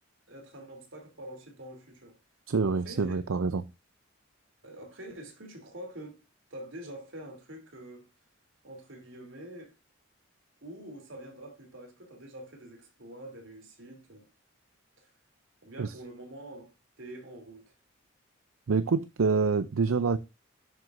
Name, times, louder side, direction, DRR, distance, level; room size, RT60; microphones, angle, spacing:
voice 1, 0.3-2.2 2.7-3.2 4.6-6.2 6.5-8.1 8.6-9.7 10.6-14.3 15.0-15.1 15.6-16.7 17.0-17.8, right 1 dB, 70° right, 3.2 m, -46 dB
voice 2, 2.5-3.6 15.8-15.9 18.7-20.2, right 4 dB, 85° right, 0.6 m, -26 dB
11.0 x 7.7 x 2.6 m
head